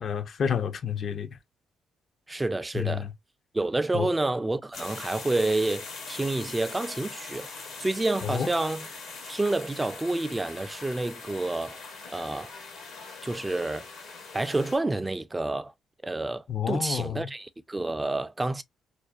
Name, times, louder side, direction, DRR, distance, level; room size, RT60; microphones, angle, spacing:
voice 1, 0.0-1.4 2.7-3.1 3.9-4.1 8.2-8.5 16.5-17.3, left 7 dB, 60° left, 0.4 m, -29 dB
voice 2, 2.3-3.1 3.5-7.5 7.8-9.0 9.3-11.8 12.1-12.5 13.2-13.9 14.3-15.7 16.0-18.6, right 2 dB, 20° right, 0.3 m, -29 dB
sound 1, 4.7-14.8, left 4 dB, 80° left, 1.0 m, -42 dB
2.5 x 2.1 x 2.3 m
supercardioid pair, 55°, 0 cm